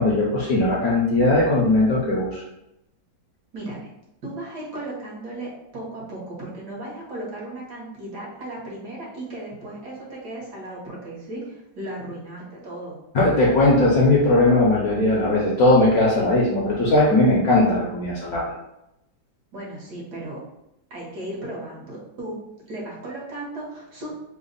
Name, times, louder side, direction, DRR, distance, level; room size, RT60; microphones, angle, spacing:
voice 1, 0.0-2.4 13.1-18.5, left 2 dB, 65° left, -5 dB, 1.0 m, -19 dB
voice 2, 3.5-3.9 4.2-13.0 19.5-20.4 20.9-22.4 22.7-24.1, right 1 dB, 60° right, -4 dB, 1.4 m, -35 dB
3.4 x 2.0 x 3.8 m, 0.85 s
omnidirectional pair, 2.1 m